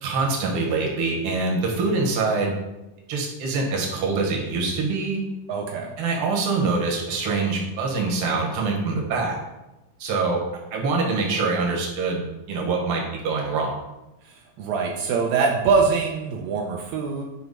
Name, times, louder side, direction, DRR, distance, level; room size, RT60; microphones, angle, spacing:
voice 1, 0.0-2.5 3.1-5.2 6.0-9.4 10.0-10.4 10.7-13.7, right 3 dB, 55° right, -1 dB, 1.6 m, -24 dB
voice 2, 5.5-5.9 14.2-17.2, right 5 dB, 90° right, 0 dB, 1.6 m, -23 dB
7.8 x 3.0 x 5.3 m, 0.98 s
omnidirectional pair, 4.0 m